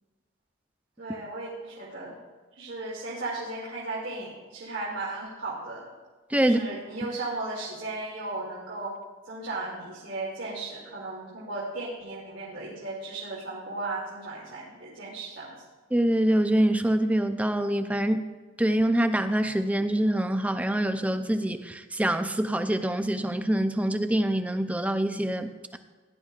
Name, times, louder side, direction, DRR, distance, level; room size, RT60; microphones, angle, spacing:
voice 1, 1.0-2.1 2.5-5.9 6.4-8.9 9.2-15.5, right 2 dB, 70° right, 2.7 m, -36 dB
voice 2, 6.3-6.7 15.9-18.3 18.6-25.8, right 1 dB, 5° right, 0.5 m, -25 dB
16.5 x 11.0 x 2.4 m
head